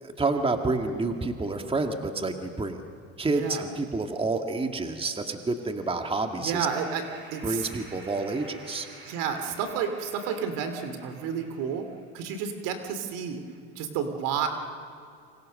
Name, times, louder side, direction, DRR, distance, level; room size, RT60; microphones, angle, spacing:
voice 1, 0.0-2.8 3.2-6.7 7.4-8.9, right 3 dB, 15° right, 5 dB, 2.0 m, -29 dB
voice 2, 3.2-3.7 6.4-7.0 7.3-7.7 9.0-11.8 12.1-13.4 13.7-14.5, right 7 dB, 70° right, 7 dB, 3.1 m, -31 dB
sound 1, 6.6-12.1, right 2 dB, 35° right, 5.9 m, -49 dB
28.0 x 25.5 x 6.5 m, 2.4 s
supercardioid pair, 100°, 33 cm